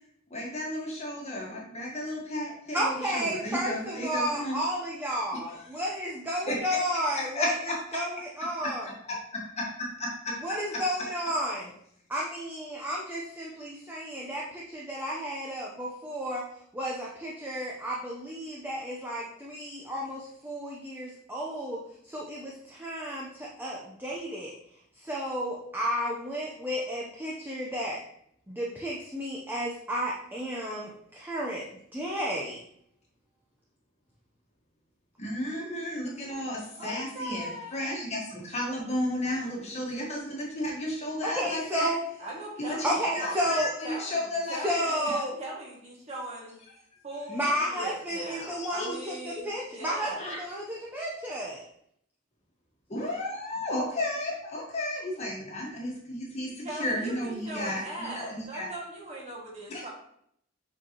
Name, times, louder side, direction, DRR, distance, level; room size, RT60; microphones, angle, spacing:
voice 1, 0.3-4.6 5.5-5.7 6.5-6.8 7.1-7.7 10.0-10.1 35.2-41.9 42.6-44.9 48.4-48.9 50.2-50.4 52.9-58.7 59.7-59.9, left 1 dB, 35° left, -2 dB, 1.5 m, -33 dB
voice 2, 2.7-7.5 7.9-8.9 10.4-11.7 12.1-16.4 16.7-24.5 24.9-28.0 28.5-31.7 31.9-32.6 41.4-42.0 42.8-43.7 44.6-45.3 47.3-51.6, equal, 10° right, -4 dB, 0.8 m, -32 dB
voice 3, 36.8-37.8 42.2-46.5 47.0-50.4 56.6-59.9, right 1 dB, 35° right, -4 dB, 2.0 m, -40 dB
7.6 x 4.4 x 3.0 m, 0.70 s
head